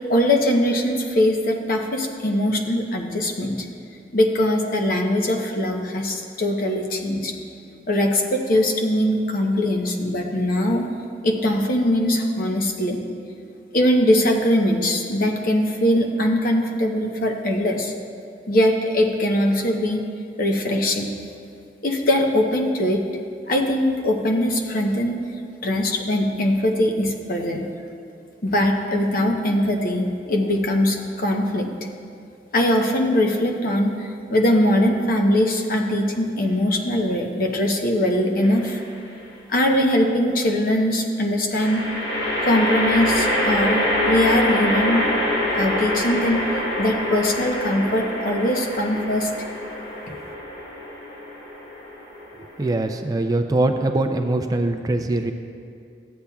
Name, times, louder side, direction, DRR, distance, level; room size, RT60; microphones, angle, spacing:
voice 1, 0.1-3.7 4.1-7.3 7.9-10.8 11.2-13.1 13.7-17.9 18.5-20.0 20.4-21.2 21.8-23.0 23.5-25.2 25.6-27.7 28.4-31.7 32.5-38.8 39.5-41.9 42.4-45.1 45.5-46.4 46.8-49.3, left 1 dB, 50° left, 2 dB, 0.8 m, -21 dB
sound 1, 38.4-39.0 41.5-52.9, left 1 dB, 75° left, 1.2 m, -25 dB
voice 2, 52.4-55.3, right 2 dB, 20° right, 5 dB, 0.3 m, -22 dB
14.5 x 8.4 x 2.3 m, 2.4 s
head